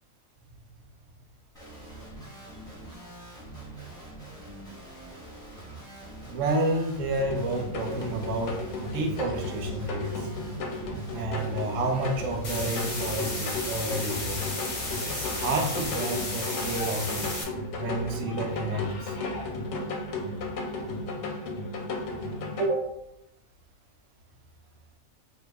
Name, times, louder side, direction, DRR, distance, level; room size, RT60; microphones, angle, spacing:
Guitar, 1.5-15.9, right 2 dB, 5° left, 0.9 m, -44 dB
voice 1, 6.3-8.6 8.8-10.1 11.1-14.5 15.1-17.3 17.8-19.1 22.6-22.8, right 2 dB, 70° right, 1 dB, 0.9 m, -30 dB
sound 1, 7.2-22.7, left 2 dB, 65° left, 0.8 m, -34 dB
sound 2, 12.4-17.4, left 2 dB, 45° left, 0.7 m, -34 dB
2.7 x 2.2 x 3.3 m, 0.81 s
omnidirectional pair, 1.4 m